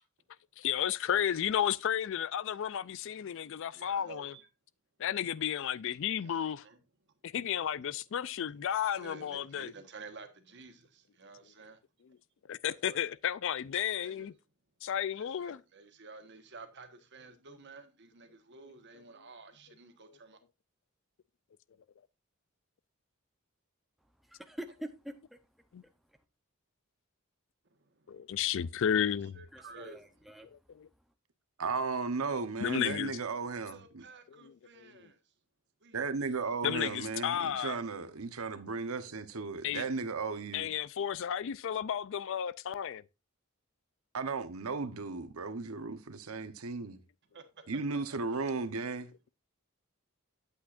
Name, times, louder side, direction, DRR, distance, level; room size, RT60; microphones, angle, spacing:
voice 1, 0.6-4.4 5.0-6.6 7.2-9.7 12.5-14.3 14.8-15.6 25.7-25.8 28.1-29.4 30.5-30.9 32.6-33.1 34.3-34.5 34.8-34.9 36.6-37.8 39.6-39.8 40.5-43.0, left 9 dB, 60° left, 0.4 m, -33 dB
voice 2, 3.7-4.4 5.9-6.8 9.0-11.8 12.6-13.0 14.0-14.3 15.2-20.4 29.4-30.0 33.5-35.2 35.8-36.0 36.6-36.7 47.3-47.4, right 3 dB, 55° right, 1.3 m, -52 dB
voice 3, 24.5-25.1 29.5-30.5, right 1 dB, ahead, 0.7 m, -44 dB
voice 4, 31.6-34.0 35.9-40.7 44.1-47.0 47.7-49.1, right 4 dB, 80° right, 0.9 m, -35 dB
8.5 x 8.3 x 2.5 m
head